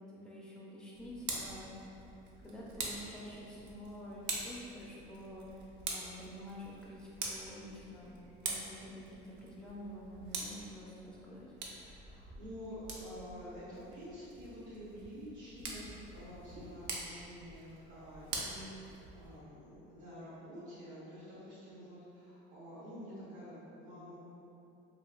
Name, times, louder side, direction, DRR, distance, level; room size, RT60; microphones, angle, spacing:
voice 1, 0.1-2.0 2.4-8.1 8.4-11.5, equal, 5° left, -6 dB, 0.4 m, -48 dB
Tick, 0.9-19.4, right 3 dB, 60° right, 0.5 m, -45 dB
voice 2, 11.7-24.2, equal, 85° right, -11 dB, 0.9 m, -49 dB
2.9 x 2.8 x 2.4 m, 2.9 s
cardioid pair, 145°, 20 cm